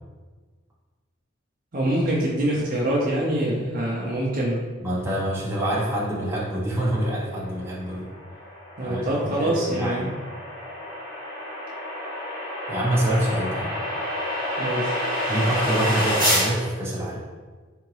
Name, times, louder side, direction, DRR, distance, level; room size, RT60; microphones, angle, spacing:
voice 1, 1.7-4.7 8.8-10.1 14.6-15.0, right 1 dB, 45° right, -4 dB, 0.5 m, -25 dB
voice 2, 4.8-8.1 8.8-10.1 12.7-13.8 15.3-17.2, right 1 dB, 10° right, -6 dB, 0.8 m, -26 dB
sound 1, 7.8-16.5, equal, 20° left, 1.3 m, -28 dB
3.8 x 3.4 x 3.2 m, 1.4 s
head